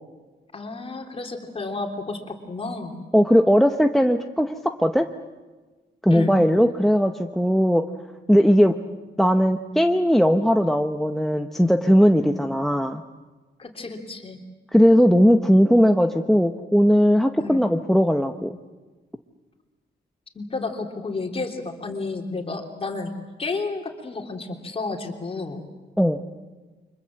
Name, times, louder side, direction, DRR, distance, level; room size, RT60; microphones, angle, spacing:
voice 1, 0.5-3.0 6.1-6.4 13.6-14.4 17.4-17.6 20.3-23.1 23.4-25.7, left 3 dB, 30° left, 3 dB, 3.3 m, -31 dB
voice 2, 3.1-5.1 6.0-7.8 8.3-8.7 9.2-13.0 14.7-18.6 26.0-26.2, equal, ahead, 5 dB, 0.8 m, -18 dB
29.5 x 25.0 x 7.7 m, 1.3 s
wide cardioid pair, 155°, 19 cm